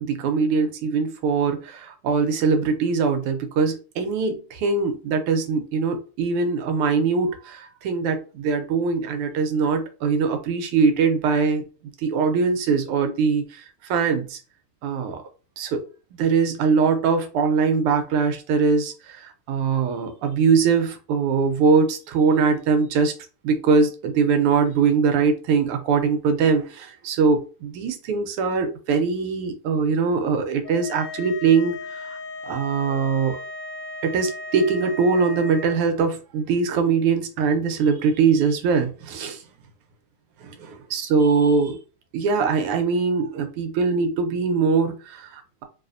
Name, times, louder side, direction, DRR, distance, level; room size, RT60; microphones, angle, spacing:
voice 1, 0.0-11.6 12.0-14.4 14.8-15.2 15.6-15.8 16.2-23.1 23.4-32.2 32.4-33.4 34.0-39.4 40.4-41.8 42.1-45.6, right 5 dB, 85° right, 1.6 m, -22 dB
sound 1, 30.6-35.8, left 3 dB, 90° left, 1.5 m, -36 dB
4.0 x 3.0 x 2.5 m
omnidirectional pair, 2.4 m